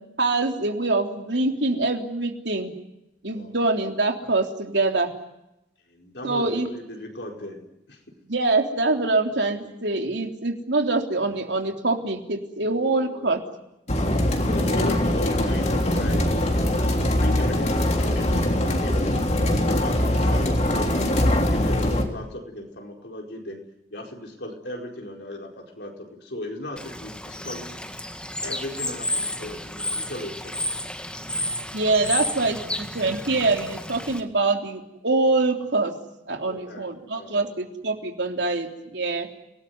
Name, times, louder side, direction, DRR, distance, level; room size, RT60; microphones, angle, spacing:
voice 1, 0.2-2.7 3.2-5.1 6.2-6.7 8.3-13.4 31.7-35.9 36.3-39.3, right 3 dB, 75° right, 3 dB, 3.4 m, -24 dB
voice 2, 5.9-8.0 12.6-13.3 14.4-16.4 17.1-17.7 18.1-19.2 19.8-23.6 23.9-28.1 28.4-30.7 36.4-36.9 37.1-37.5, left 1 dB, 65° left, 1 dB, 4.8 m, -37 dB
sound 1, 13.9-22.0, left 1 dB, 40° left, 3.4 m, -22 dB
Bird / Water, 26.8-34.2, left 1 dB, 5° left, 1.8 m, -31 dB
29.0 x 19.0 x 9.6 m, 0.90 s
head